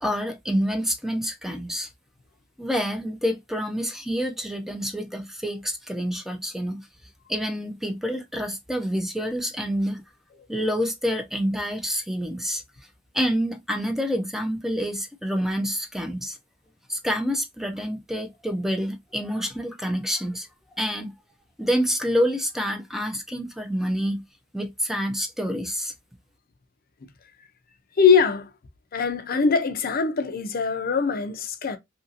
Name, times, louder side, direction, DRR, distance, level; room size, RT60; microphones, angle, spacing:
voice 1, 0.0-1.9 2.6-6.9 7.3-10.0 10.5-12.6 13.1-16.4 16.9-20.5 20.8-21.1 21.6-24.2 24.5-25.9, equal, ahead, 0.4 m, -27 dB
voice 2, 28.0-28.5 28.9-31.8, left 5 dB, 50° left, 0.5 m, -22 dB
2.9 x 2.7 x 2.5 m
head